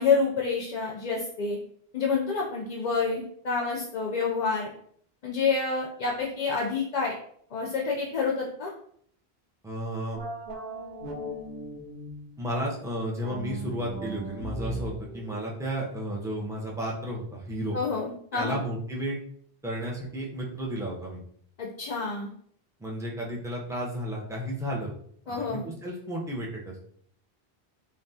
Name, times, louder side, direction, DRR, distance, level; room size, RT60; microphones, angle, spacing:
voice 1, 0.0-1.6 1.9-4.7 5.2-7.1 7.5-8.7 17.7-18.6 21.6-22.3 25.3-25.7, left 4 dB, 55° left, -2 dB, 0.5 m, -28 dB
voice 2, 9.6-10.2 12.4-17.8 18.3-19.2 19.6-21.2 22.8-24.9 25.3-26.8, right 1 dB, 5° right, -3 dB, 0.4 m, -33 dB
sound 1, 10.1-12.4 13.2-16.5, equal, 75° right, 1.0 m, -38 dB
3.4 x 2.3 x 2.7 m, 0.63 s
omnidirectional pair, 1.0 m